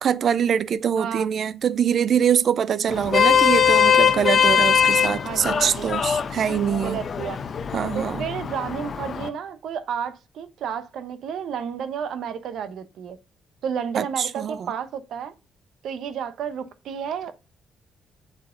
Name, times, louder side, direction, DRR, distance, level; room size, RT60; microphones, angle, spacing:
voice 1, 0.0-7.0 7.7-8.2 14.0-14.7, right 8 dB, 60° right, 0.5 m, -23 dB
voice 2, 1.0-1.3 5.2-6.0 6.8-7.4 7.9-13.2 13.6-15.3 15.8-17.3, right 7 dB, 75° right, 1.0 m, -31 dB
Vehicle horn car horn honking, 2.9-9.3, left 8 dB, 50° left, 0.9 m, -21 dB
8.0 x 4.3 x 3.8 m
cardioid pair, 90°, 0 cm